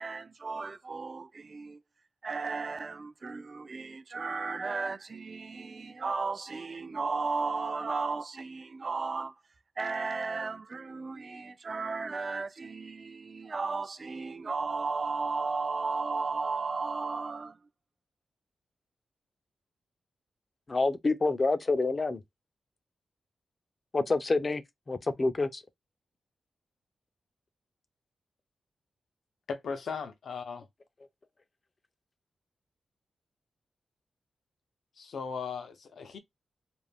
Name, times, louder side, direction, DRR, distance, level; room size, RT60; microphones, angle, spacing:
voice 1, 0.0-1.8 2.2-9.3 9.8-17.6, right 4 dB, 45° right, 0.3 m, -34 dB
voice 2, 20.7-22.2 23.9-24.6 24.9-25.6, left 3 dB, 35° left, 0.4 m, -27 dB
voice 3, 29.5-30.7 35.0-36.2, left 5 dB, 75° left, 0.6 m, -37 dB
2.4 x 2.1 x 3.3 m
cardioid pair, 95°, 0 cm